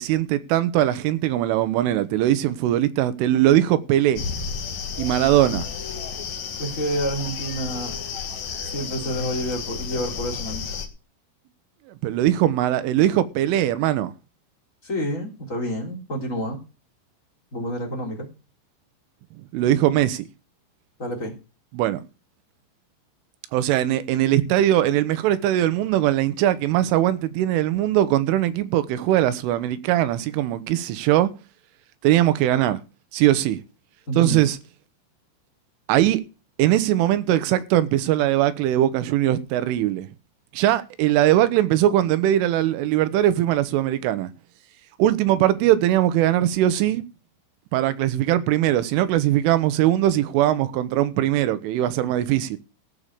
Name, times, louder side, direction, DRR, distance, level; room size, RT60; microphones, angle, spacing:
voice 1, 0.0-4.2 5.0-5.6 12.0-14.1 19.5-20.2 21.7-22.0 23.5-31.3 32.0-32.8 33.1-33.6 34.2-34.6 35.9-36.2 36.6-40.1 40.5-44.3 45.0-47.0 47.7-52.6, right 13 dB, 85° right, 3.5 m, -20 dB
sound 1, 4.1-10.9, left 6 dB, 60° left, 2.0 m, -32 dB
voice 2, 6.6-8.0 8.6-10.7 14.8-16.6 17.5-18.3 21.0-21.3 34.1-34.4, equal, 20° left, 3.4 m, -28 dB
15.0 x 6.7 x 6.8 m
omnidirectional pair, 5.6 m